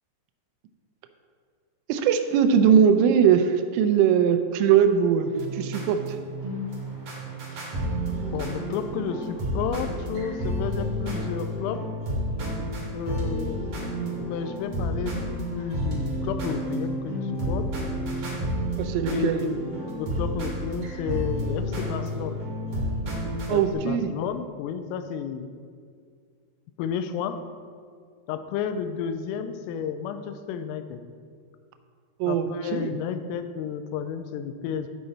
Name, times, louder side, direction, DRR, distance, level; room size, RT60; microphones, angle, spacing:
voice 1, 1.9-6.2 18.8-19.4 23.5-24.1 32.2-33.0, right 8 dB, 85° right, 7 dB, 3.2 m, -21 dB
sound 1, 5.3-23.7, equal, 50° right, 2.0 m, -31 dB
voice 2, 8.3-11.8 12.9-13.8 14.2-15.3 15.5-17.7 19.1-19.6 20.0-22.4 23.5-25.5 26.8-27.4 28.3-31.0 32.3-34.9, left 7 dB, 85° left, 9 dB, 3.2 m, -32 dB
11.5 x 5.9 x 4.1 m, 2.1 s
omnidirectional pair, 5.9 m